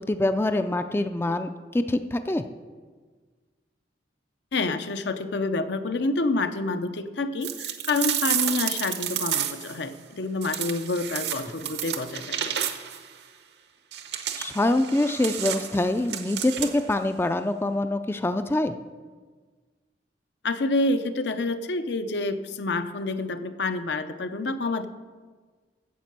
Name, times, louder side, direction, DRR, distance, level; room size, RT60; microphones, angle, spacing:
voice 1, 0.0-2.4 14.4-18.7, left 1 dB, 15° left, 9 dB, 0.4 m, -25 dB
voice 2, 4.5-12.6 20.4-24.9, left 2 dB, 70° left, 9 dB, 0.7 m, -28 dB
sound 1, 7.4-9.8 10.4-13.0 13.9-16.9, right 10 dB, 65° right, 0.9 m, -31 dB
9.5 x 7.5 x 7.4 m, 1.5 s
head